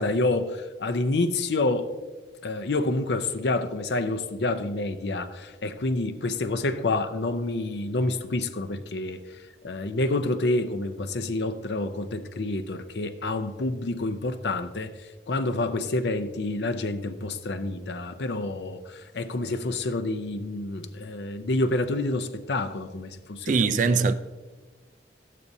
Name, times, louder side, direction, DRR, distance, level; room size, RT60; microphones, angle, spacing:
voice 1, 0.0-1.9 2.4-9.2 9.6-14.9 15.3-24.0, left 2 dB, 70° left, 0.6 m, -28 dB
voice 2, 23.5-24.1, right 4 dB, 45° right, 0.4 m, -21 dB
12.0 x 8.4 x 2.7 m
head